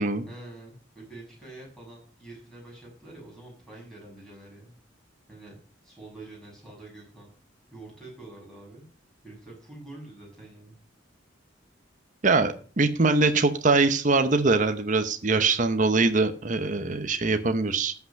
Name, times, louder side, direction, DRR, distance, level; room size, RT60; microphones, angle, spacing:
voice 1, 0.2-4.7 5.3-5.6 5.8-7.3 7.7-8.8 9.2-10.7, right 2 dB, 5° left, -4 dB, 7.4 m, -46 dB
voice 2, 12.2-17.9, right 3 dB, 40° right, 9 dB, 0.9 m, -23 dB
13.5 x 5.9 x 6.5 m, 0.42 s
head